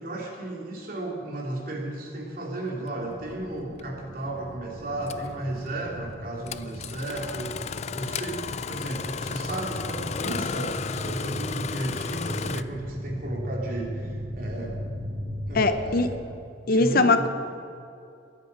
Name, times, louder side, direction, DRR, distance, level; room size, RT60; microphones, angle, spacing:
voice 1, 0.0-14.8 15.5-16.1 16.6-17.3, right 1 dB, 50° right, -2 dB, 3.1 m, -34 dB
sound 1, 3.0-16.1, equal, 85° right, 3.7 m, -37 dB
Engine starting, 3.8-3.9 5.1-5.3 6.5-12.6, left 6 dB, 40° left, 0.4 m, -34 dB
voice 2, 15.5-16.1 16.7-17.3, left 3 dB, 55° left, 10 dB, 0.8 m, -21 dB
22.0 x 9.1 x 5.5 m, 2.5 s
head